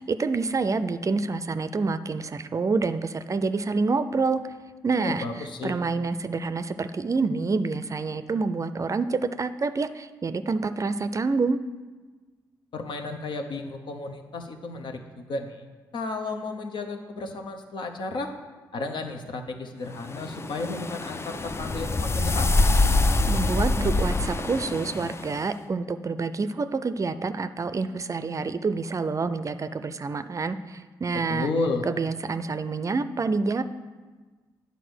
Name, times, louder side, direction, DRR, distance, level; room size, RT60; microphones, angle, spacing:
voice 1, 0.0-4.4 4.8-11.6 23.3-31.5 31.8-33.6, right 4 dB, 40° right, 12 dB, 0.5 m, -27 dB
voice 2, 5.0-5.8 12.7-15.6 15.9-18.3 18.7-22.5 31.3-31.9, left 3 dB, 65° left, 4 dB, 1.0 m, -33 dB
sound 1, 20.1-25.4, left 2 dB, 30° left, 0.5 m, -25 dB
9.1 x 4.1 x 6.3 m, 1.3 s
supercardioid pair, 45°, 9 cm